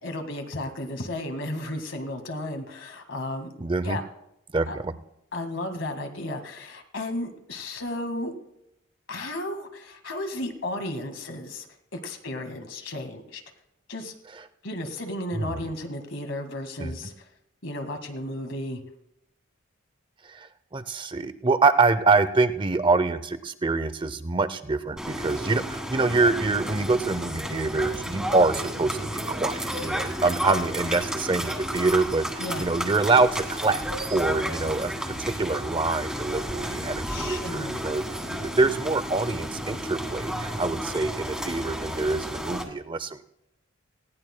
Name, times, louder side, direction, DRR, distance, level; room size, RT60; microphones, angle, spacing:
voice 1, 0.0-3.5 3.8-4.0 4.7-4.8 5.3-8.3 9.1-11.7 11.9-13.4 13.9-14.1 14.6-17.3 17.6-18.8 32.4-32.7 37.1-37.8, left 1 dB, 65° left, 6 dB, 1.8 m, -34 dB
voice 2, 3.6-4.0 4.5-4.9 15.4-15.6 16.8-16.9 20.2-32.3 32.6-33.8 34.1-43.2, right 3 dB, 25° right, 13 dB, 0.6 m, -25 dB
sound 1, 25.0-42.6, equal, 5° right, 1.6 m, -32 dB
19.5 x 17.0 x 2.2 m, 0.83 s
head